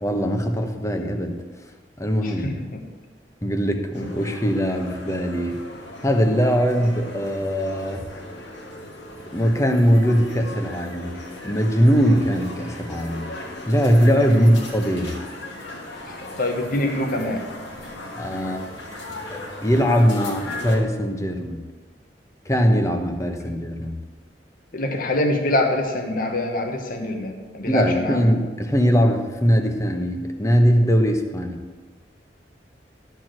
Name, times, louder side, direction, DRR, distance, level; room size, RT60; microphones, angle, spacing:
voice 1, 0.0-1.4 2.0-2.6 3.4-5.6 6.0-8.0 9.3-13.3 13.7-15.2 18.1-18.6 19.3-21.6 22.4-23.9 27.6-31.6, equal, 20° left, 4 dB, 1.0 m, -21 dB
voice 2, 2.2-2.8 10.0-10.1 13.3-13.5 14.3-14.6 16.2-17.5 24.7-28.2, left 1 dB, 55° left, 3 dB, 1.2 m, -25 dB
sound 1, 3.9-20.8, left 2 dB, 80° left, 2.0 m, -38 dB
12.5 x 4.6 x 7.6 m, 1.4 s
head